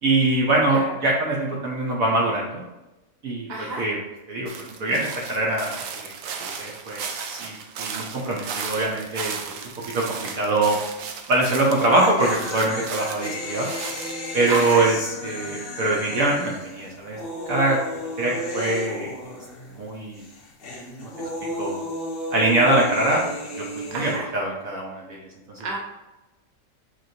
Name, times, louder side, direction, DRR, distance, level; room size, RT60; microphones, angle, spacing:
voice 1, 0.0-2.6 3.2-4.0 4.3-4.5 4.8-6.1 6.4-9.7 9.9-10.8 11.3-13.7 14.3-15.0 15.2-17.2 17.5-17.8 18.2-19.1 19.7-20.2 21.0-21.1 21.6-21.8 22.3-23.2 23.6-25.2 25.5-25.7, right 2 dB, 60° right, -3 dB, 1.0 m, -23 dB
voice 2, 3.5-3.8 14.5-14.8 23.9-24.2 25.6-25.8, right 2 dB, 35° right, -2 dB, 0.7 m, -29 dB
sound 1, 4.5-14.8, right 6 dB, 80° right, 0.7 m, -35 dB
sound 2, 8.2-8.5 8.8-8.9 11.5-19.9 20.1-24.2, left 1 dB, 60° left, 0.6 m, -34 dB
5.0 x 3.0 x 2.8 m, 1.0 s
omnidirectional pair, 1.9 m